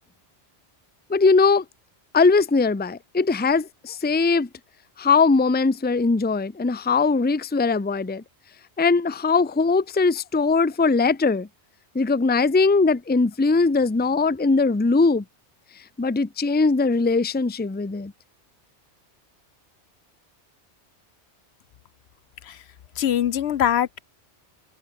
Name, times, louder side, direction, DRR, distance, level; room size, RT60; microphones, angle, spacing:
voice 1, 1.1-1.6 2.1-4.5 5.0-8.2 8.8-11.5 11.9-15.2 16.0-18.1, left 4 dB, 10° left, 0.6 m, -20 dB
voice 2, 23.0-24.0, left 10 dB, 70° left, 0.9 m, -23 dB
omnidirectional pair, 1.2 m